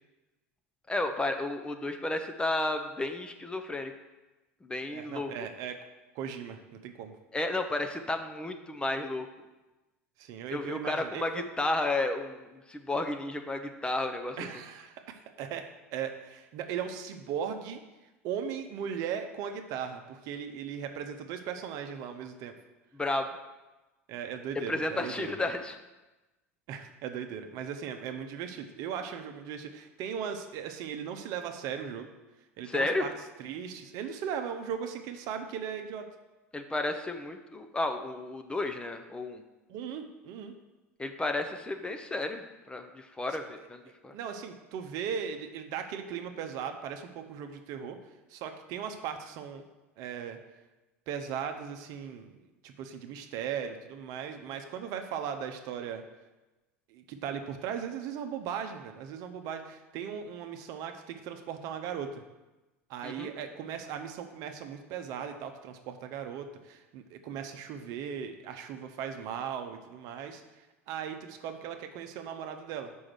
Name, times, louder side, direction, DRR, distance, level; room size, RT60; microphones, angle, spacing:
voice 1, 0.9-3.9 4.6-5.3 7.3-9.3 10.5-14.5 22.9-23.3 24.7-25.8 32.7-33.1 36.5-39.4 41.0-44.1 63.0-63.3, left 2 dB, 10° left, 6 dB, 0.7 m, -32 dB
voice 2, 4.9-5.8 6.1-7.2 10.2-11.4 14.4-15.6 15.9-17.8 18.2-22.5 24.1-25.3 26.7-32.1 32.6-33.1 33.4-36.1 39.7-40.5 43.3-43.4 44.1-48.0 48.3-49.6 50.0-50.4 51.1-52.3 52.6-56.0 56.9-62.2 62.9-72.9, right 8 dB, 50° right, 6 dB, 0.8 m, -38 dB
5.4 x 4.9 x 6.2 m, 1.1 s
figure-of-eight pair, 80°, 8 cm